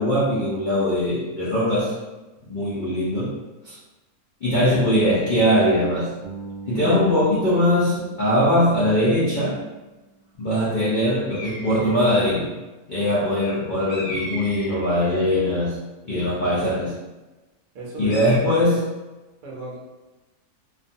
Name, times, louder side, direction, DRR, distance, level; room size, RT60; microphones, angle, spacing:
voice 1, 0.0-1.9 2.5-3.4 3.6-3.8 4.4-6.1 6.7-9.6 10.4-12.5 12.9-15.8 16.0-17.0 18.0-18.8, left 1 dB, 85° left, -8 dB, 0.4 m, -21 dB
Bass guitar, 6.2-10.2, right 4 dB, 75° right, 1.0 m, -40 dB
sound 1, 11.3-12.1 13.9-15.4 18.1-18.4, left 1 dB, 55° left, 0.7 m, -36 dB
voice 2, 17.7-18.8 19.4-19.8, right 2 dB, 55° right, -4 dB, 0.6 m, -36 dB
2.5 x 2.3 x 2.6 m, 1.1 s
omnidirectional pair, 1.5 m